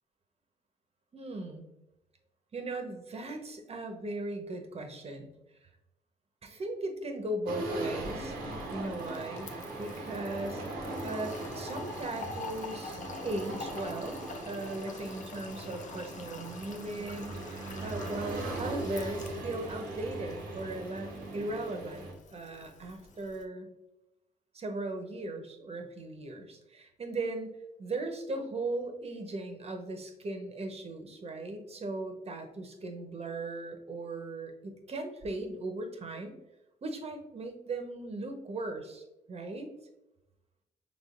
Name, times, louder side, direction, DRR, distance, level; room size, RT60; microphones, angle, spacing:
voice 1, 1.1-1.7 2.5-5.3 6.4-9.5 9.8-23.7 24.5-36.4 36.8-39.7, right 2 dB, 40° right, 4 dB, 1.0 m, -38 dB
sound 1, 7.5-22.1, right 2 dB, 80° right, 1.0 m, -39 dB
Fill (with liquid), 7.6-23.4, left 5 dB, 55° left, 0.6 m, -48 dB
5.3 x 3.6 x 2.5 m, 0.91 s
supercardioid pair, 55°, 15 cm